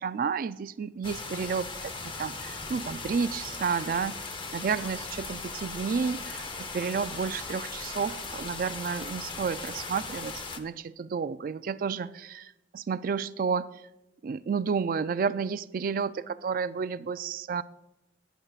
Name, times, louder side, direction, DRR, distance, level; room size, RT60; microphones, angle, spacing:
voice 1, 0.0-4.3 4.5-13.7 14.2-17.6, right 5 dB, 50° right, 15 dB, 0.3 m, -31 dB
sound 1, 1.0-10.6, left 3 dB, 30° left, 0.8 m, -38 dB
18.5 x 10.0 x 2.4 m, 0.93 s
head